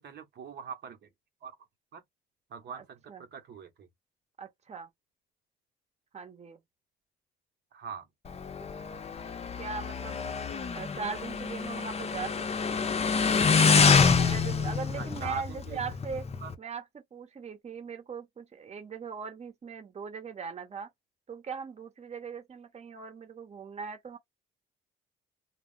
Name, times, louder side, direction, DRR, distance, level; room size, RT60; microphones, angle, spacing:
voice 1, 0.0-1.1 1.4-1.6 1.9-2.0 2.5-3.9 7.7-8.1 14.9-15.8 16.4-16.5, right 6 dB, 60° right, 0.9 m, -42 dB
voice 2, 2.7-3.2 4.4-4.9 6.1-6.6 9.6-10.3 10.7-13.0 14.2-16.3 16.6-20.9 21.3-24.2, right 6 dB, 35° right, 0.9 m, -40 dB
Motorcycle, 8.3-16.5, left 5 dB, 30° left, 0.6 m, -26 dB
2.3 x 2.0 x 3.7 m
cardioid pair, 90°, 20 cm